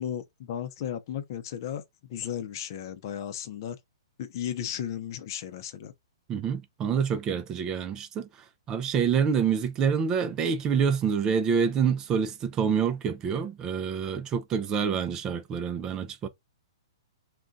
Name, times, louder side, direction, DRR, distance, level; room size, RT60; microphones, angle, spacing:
voice 1, 0.0-1.8 2.1-3.8 4.2-5.9, left 9 dB, 50° left, 0.6 m, -35 dB
voice 2, 6.3-8.3 8.7-16.3, right 7 dB, 20° right, 0.4 m, -27 dB
2.5 x 2.2 x 3.8 m
hypercardioid pair, 140°, 3 cm